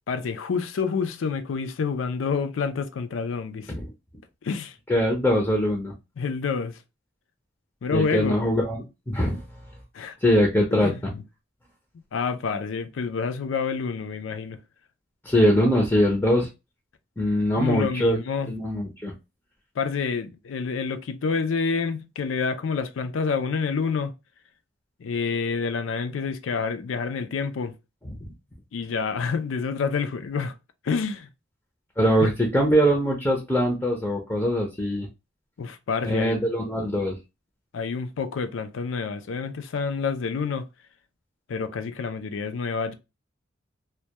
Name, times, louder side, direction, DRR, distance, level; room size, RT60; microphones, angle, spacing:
voice 1, 0.1-3.7 4.4-4.8 6.2-6.8 7.8-8.4 9.9-10.2 10.7-11.2 12.1-14.6 17.6-18.5 19.8-24.1 25.0-27.7 28.7-30.5 30.8-31.3 32.2-32.3 35.6-36.4 37.7-40.7 41.5-43.0, left 5 dB, 85° left, 0.4 m, -28 dB
voice 2, 4.9-5.9 7.9-9.6 10.2-11.1 15.2-16.5 17.2-18.2 18.5-19.1 28.1-28.2 32.0-35.1 36.0-37.2, equal, 10° left, 0.5 m, -22 dB
2.2 x 2.1 x 2.7 m
head